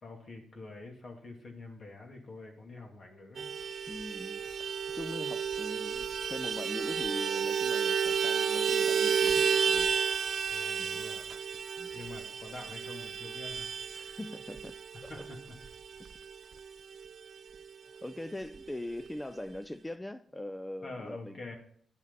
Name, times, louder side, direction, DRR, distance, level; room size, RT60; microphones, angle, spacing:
voice 1, 0.0-3.5 10.5-11.3 11.9-13.7 15.1-15.5 20.8-21.6, left 3 dB, 55° left, 1 dB, 2.8 m, -46 dB
Vehicle horn car horn honking, 3.4-17.3 17.5-17.7 18.0-18.1 18.4-19.1, right 7 dB, 60° right, 0.4 m, -32 dB
voice 2, 3.9-9.9 10.8-11.0 11.8-11.9 13.9-14.7 15.0-15.3 18.0-21.5, left 1 dB, 15° left, 11 dB, 0.5 m, -42 dB
9.8 x 7.2 x 4.0 m, 0.63 s
supercardioid pair, 60°, 0 cm